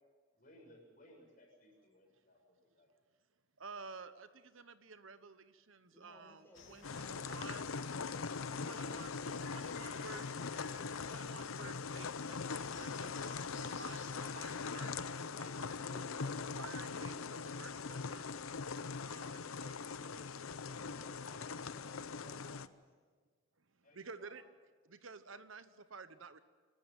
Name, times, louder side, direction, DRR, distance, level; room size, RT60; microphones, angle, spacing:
voice 1, 0.4-2.9 15.2-16.6 19.0-19.3 20.7-21.4 21.7-21.8 22.1-22.6 23.8-24.4, left 1 dB, 40° left, 0 dB, 7.0 m, -61 dB
voice 2, 3.6-7.8 8.6-9.1 9.5-10.3 11.1-16.3 16.6-17.1 17.6-18.2 19.0-20.5 23.9-24.4 24.9-26.4, right 4 dB, 70° right, 12 dB, 1.0 m, -52 dB
voice 3, 5.9-9.7 20.4-22.9, left 1 dB, 10° left, 0 dB, 5.1 m, -63 dB
sound 1, 6.5-14.6, left 4 dB, 65° left, 3.1 m, -56 dB
sound 2, 6.8-22.7, left 5 dB, 85° left, 0.7 m, -41 dB
27.0 x 13.0 x 9.2 m, 1.5 s
head